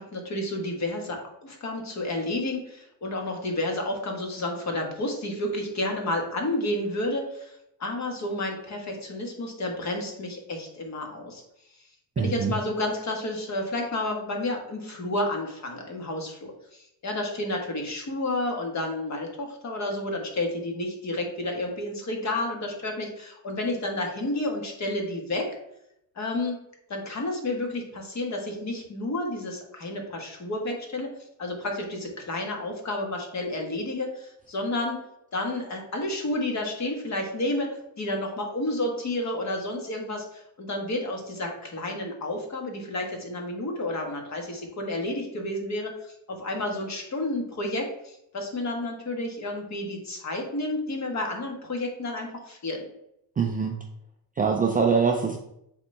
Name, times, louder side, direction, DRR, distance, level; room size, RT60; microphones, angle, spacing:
voice 1, 0.0-7.5 7.8-11.4 12.2-25.5 26.1-26.6 26.9-31.1 31.4-35.0 35.3-37.7 38.0-52.8, left 1 dB, 35° left, 2 dB, 1.5 m, -31 dB
voice 2, 12.2-12.5 53.4-53.7 54.4-55.4, right 5 dB, 20° right, 2 dB, 0.4 m, -23 dB
7.1 x 4.1 x 3.4 m, 0.78 s
cardioid pair, 130°, 48 cm